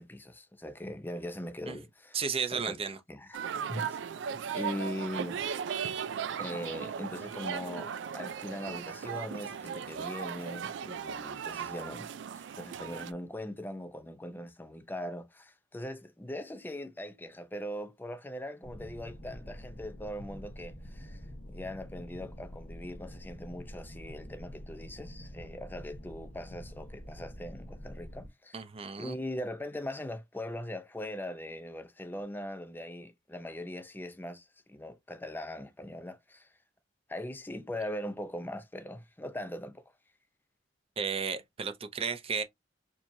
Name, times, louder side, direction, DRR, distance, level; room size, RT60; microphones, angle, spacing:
voice 1, 0.0-2.2 2.5-2.8 3.1-3.4 3.7-4.0 4.5-5.4 6.4-21.2 21.5-28.6 29.0-36.5 37.1-39.8, left 1 dB, 10° left, 0.5 m, -40 dB
voice 2, 2.1-3.0 28.5-29.2 41.0-42.4, right 6 dB, 30° right, 0.6 m, -33 dB
sound 1, 3.3-13.1, right 7 dB, 75° right, 0.4 m, -37 dB
sound 2, 18.6-28.3, equal, 45° left, 1.2 m, -46 dB
4.5 x 2.8 x 2.6 m
head